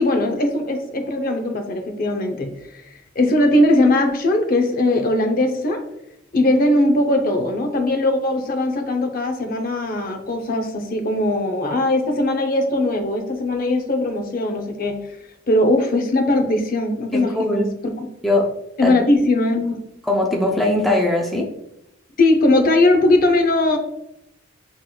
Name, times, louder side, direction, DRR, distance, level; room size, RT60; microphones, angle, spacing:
voice 1, 0.0-2.5 3.2-5.8 6.3-15.0 15.5-17.7 18.0-18.1 18.8-19.8 22.2-23.8, left 1 dB, 45° left, 5 dB, 0.6 m, -19 dB
voice 2, 17.1-17.7 18.2-18.5 18.8-19.0 20.0-21.5, left 1 dB, ahead, -2 dB, 0.4 m, -20 dB
7.7 x 2.9 x 2.3 m, 0.80 s
head